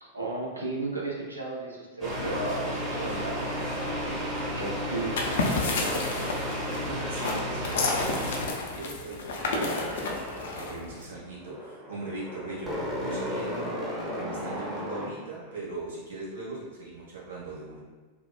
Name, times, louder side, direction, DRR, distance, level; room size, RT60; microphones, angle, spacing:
voice 1, 0.0-3.8 4.5-5.3, right 2 dB, 80° right, -2 dB, 0.5 m, -34 dB
sound 1, 2.0-8.4, equal, 20° right, 1.0 m, -32 dB
sound 2, 5.0-11.1, left 3 dB, 60° left, 0.3 m, -31 dB
voice 2, 6.1-6.4 6.8-10.0 10.5-13.7 14.0-17.8, right 2 dB, 60° right, -5 dB, 0.8 m, -40 dB
sound 3, 9.4-15.6, equal, ahead, 0.7 m, -36 dB
2.9 x 2.0 x 2.3 m, 1.4 s
figure-of-eight pair, 90°, 0 cm